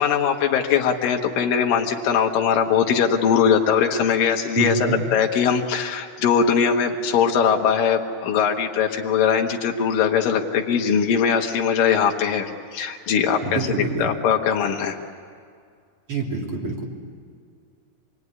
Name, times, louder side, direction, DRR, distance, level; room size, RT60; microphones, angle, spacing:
voice 1, 0.0-13.6 14.0-15.0, left 7 dB, 80° left, 2 dB, 3.2 m, -21 dB
voice 2, 4.6-5.0 13.4-14.1 16.1-16.9, right 3 dB, 40° right, -1 dB, 3.8 m, -26 dB
27.5 x 21.0 x 9.7 m, 2.2 s
omnidirectional pair, 3.9 m